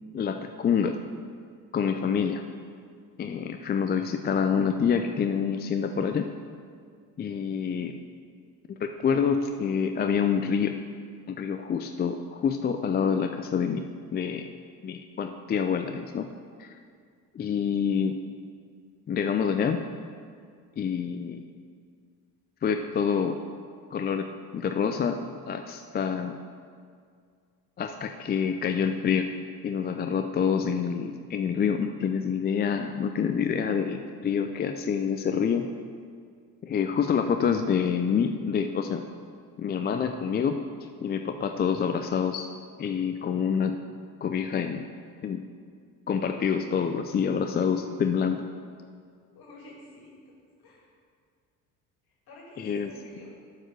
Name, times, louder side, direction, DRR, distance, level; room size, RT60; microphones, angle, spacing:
voice 1, 0.1-1.0 1.7-2.4 3.2-6.3 7.2-8.0 8.8-10.8 11.3-14.5 14.8-16.3 16.6-16.7 17.3-18.2 19.1-19.8 20.8-21.4 22.6-23.4 23.9-24.3 24.5-26.4 27.8-29.3 29.6-35.7 36.6-39.0 39.6-40.6 41.0-42.5 42.8-43.7 44.2-44.9 45.2-45.4 46.1-48.4 52.6-52.9, left 7 dB, 20° left, 7 dB, 0.4 m, -27 dB
voice 2, 47.5-48.2 49.3-50.1 50.6-50.9 52.1-53.3, left 1 dB, 50° left, -3 dB, 2.5 m, -49 dB
7.3 x 6.7 x 6.5 m, 2.1 s
hypercardioid pair, 60°, 46 cm